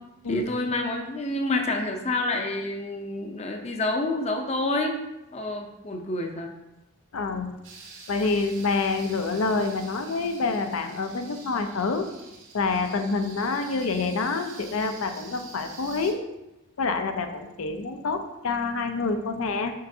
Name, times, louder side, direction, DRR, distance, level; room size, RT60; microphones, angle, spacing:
voice 1, 0.3-5.0 5.3-6.5, left 2 dB, 30° left, 2 dB, 0.5 m, -28 dB
voice 2, 7.1-7.5 8.1-12.1 12.5-16.2 16.8-19.7, left 3 dB, 80° left, 6 dB, 0.5 m, -27 dB
sound 1, 7.6-16.1, right 4 dB, 65° right, 1.5 m, -46 dB
6.5 x 5.5 x 2.7 m, 0.96 s
head